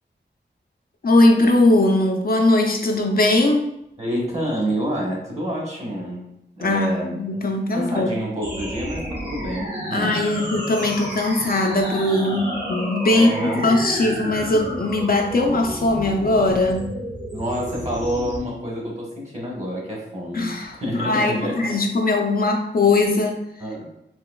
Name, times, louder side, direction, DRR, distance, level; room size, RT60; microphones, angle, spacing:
voice 1, 1.0-3.7 6.6-8.1 9.9-16.9 20.3-23.4, left 2 dB, 50° left, 3 dB, 0.4 m, -20 dB
voice 2, 4.0-6.3 6.6-7.2 7.7-10.2 13.1-13.8 17.3-20.5 20.8-21.8 23.6-23.9, equal, 35° right, -2 dB, 1.3 m, -28 dB
sound 1, 8.4-18.4, equal, 60° right, 1.4 m, -31 dB
3.8 x 2.8 x 2.2 m, 0.81 s
wide cardioid pair, 80°, 19 cm